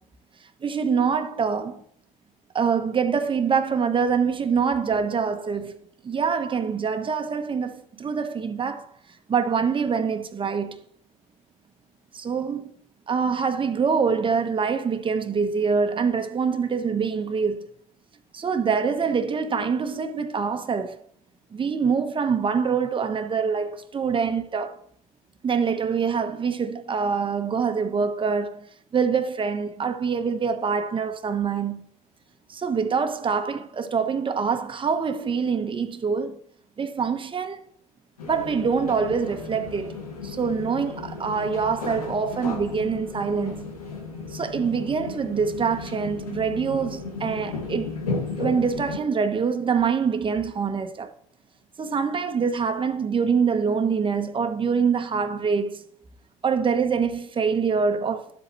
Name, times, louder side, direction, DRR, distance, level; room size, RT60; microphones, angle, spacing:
voice 1, 0.6-1.8 2.5-8.9 9.3-10.8 12.1-12.7 13.1-17.7 18.3-21.0 21.5-24.8 25.4-31.8 32.5-36.4 36.8-37.6 38.2-40.0 40.2-43.7 44.3-47.9 48.4-51.1 51.8-55.8 56.4-58.3, right 6 dB, 25° right, 1.3 m, -25 dB
sound 1, 38.2-49.0, left 3 dB, 90° left, 2.0 m, -34 dB
12.5 x 7.6 x 3.2 m
hypercardioid pair, 70°, 19 cm